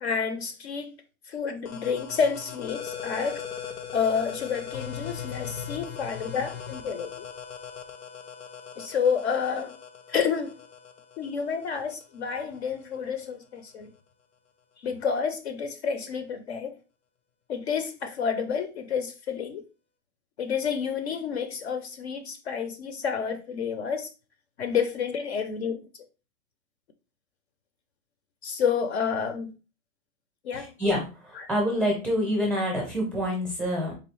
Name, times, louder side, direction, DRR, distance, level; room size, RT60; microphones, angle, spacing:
voice 1, 0.0-0.9 1.3-3.4 3.9-7.3 8.8-9.7 10.1-10.6 11.2-13.9 14.8-16.8 17.5-19.6 20.4-24.1 24.6-25.8 28.4-29.5 30.4-30.7 31.4-31.5, left 6 dB, 50° left, 0.4 m, -29 dB
sound 1, 1.7-13.0, left 7 dB, 85° left, 0.8 m, -40 dB
voice 2, 30.5-33.9, equal, 5° right, 0.5 m, -27 dB
3.9 x 3.1 x 3.0 m
supercardioid pair, 170°, 44 cm